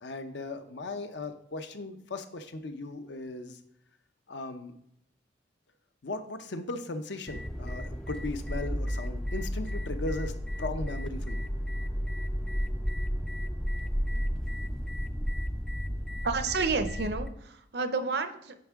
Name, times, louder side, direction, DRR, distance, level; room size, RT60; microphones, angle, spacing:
voice 1, 0.0-3.6 4.3-4.7 6.0-11.5, left 2 dB, 70° left, 8 dB, 0.6 m, -37 dB
sound 1, 7.3-17.3, equal, 5° left, 0.3 m, -33 dB
voice 2, 16.2-18.6, right 4 dB, 60° right, 9 dB, 0.6 m, -30 dB
9.2 x 4.5 x 3.5 m, 0.72 s
head